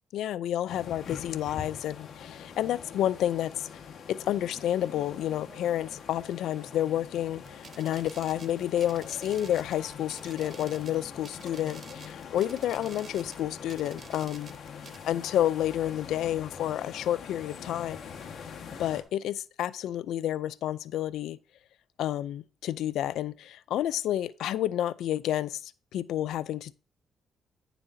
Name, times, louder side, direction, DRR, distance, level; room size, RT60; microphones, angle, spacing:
voice 1, 0.1-3.8 4.1-14.5 15.0-18.0 18.8-21.4 22.0-26.7, left 12 dB, 80° left, 0.4 m, -30 dB
sound 1, 0.7-19.0, left 6 dB, 60° left, 1.4 m, -44 dB
sound 2, 4.4-12.3 12.5-18.0, right 7 dB, 85° right, 3.1 m, -62 dB
sound 3, 7.3-15.0, right 5 dB, 45° right, 0.8 m, -51 dB
10.0 x 6.9 x 2.7 m
cardioid pair, 90°, 0 cm